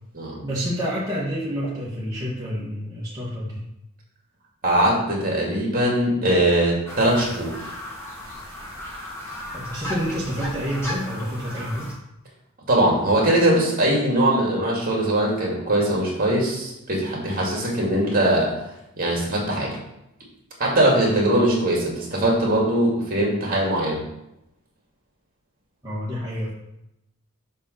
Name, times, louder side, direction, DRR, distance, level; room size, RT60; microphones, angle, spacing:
voice 1, 0.4-3.6 9.5-11.9 25.8-26.5, equal, 15° right, -9 dB, 1.8 m, -28 dB
voice 2, 4.6-7.5 12.7-18.5 19.0-19.8 20.6-24.0, right 1 dB, 40° right, -3 dB, 2.5 m, -21 dB
sound 1, 6.8-11.9, left 1 dB, 10° left, 1.7 m, -35 dB
5.6 x 5.4 x 6.5 m, 0.84 s
head